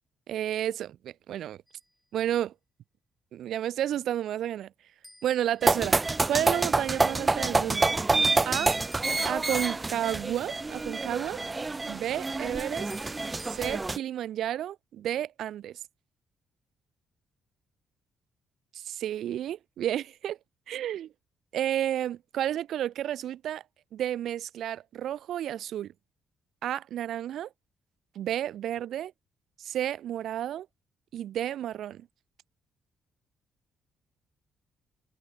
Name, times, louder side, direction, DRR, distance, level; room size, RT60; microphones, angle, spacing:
voice 1, 0.3-1.6 2.1-2.5 3.3-4.7 5.2-6.0 6.3-7.9 8.4-8.7 9.2-11.4 11.9-12.9 13.4-15.8 18.7-20.4 20.7-21.1 21.5-23.6 23.9-25.9 26.6-27.5 28.1-29.1 29.6-30.7 31.1-32.1, right 11 dB, 75° right, 0.8 m, -31 dB
sound 1, 1.7-2.1 5.0-6.4 8.9-10.2 12.9-13.7, equal, ahead, 6.6 m, -54 dB
sound 2, 5.6-14.0, right 3 dB, 20° right, 1.3 m, -27 dB
cardioid pair, 90°, 0 cm